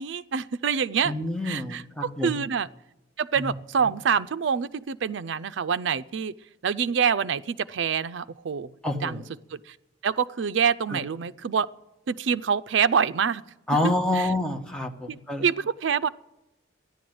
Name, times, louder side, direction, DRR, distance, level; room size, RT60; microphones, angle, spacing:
voice 1, 0.0-1.1 1.4-2.7 3.2-6.3 6.6-8.7 9.0-9.2 9.5-9.8 10.0-11.7 12.1-13.4 14.1-14.3 15.1-16.1, right 6 dB, 70° right, 14 dB, 0.4 m, -26 dB
voice 2, 1.0-2.4 3.4-3.5 3.8-3.9 8.8-9.3 10.9-11.0 13.7-15.4, left 1 dB, 5° left, 2 dB, 1.1 m, -28 dB
13.5 x 10.5 x 7.8 m, 0.95 s
head